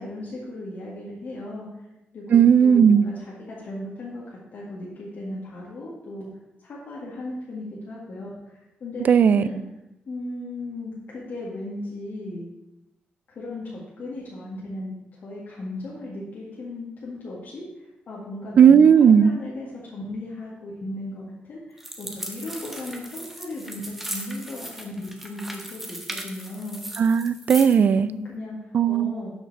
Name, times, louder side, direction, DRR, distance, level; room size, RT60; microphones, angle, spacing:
voice 1, 0.0-1.8 2.1-6.3 6.6-9.6 10.1-12.5 13.3-26.8 28.0-29.3, left 1 dB, 55° left, -6 dB, 2.0 m, -36 dB
voice 2, 2.3-3.1 9.1-9.5 18.6-19.3 27.0-28.1 28.7-29.1, right 7 dB, 50° right, 15 dB, 0.4 m, -15 dB
sound 1, 21.8-27.8, right 1 dB, 5° right, 1.0 m, -37 dB
12.0 x 5.9 x 4.1 m, 0.92 s
wide cardioid pair, 155°, 4 cm